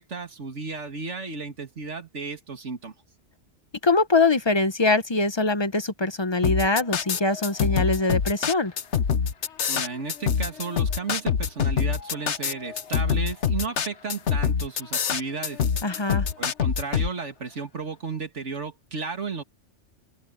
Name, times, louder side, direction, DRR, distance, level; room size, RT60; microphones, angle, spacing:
voice 1, 0.0-2.9 9.7-15.6 16.4-19.4, right 4 dB, 85° right, 2.6 m, -33 dB
voice 2, 3.8-8.7 15.8-16.3, left 3 dB, 25° left, 0.7 m, -23 dB
sound 1, 6.4-17.1, left 7 dB, 75° left, 1.4 m, -25 dB
open air
omnidirectional pair, 1.2 m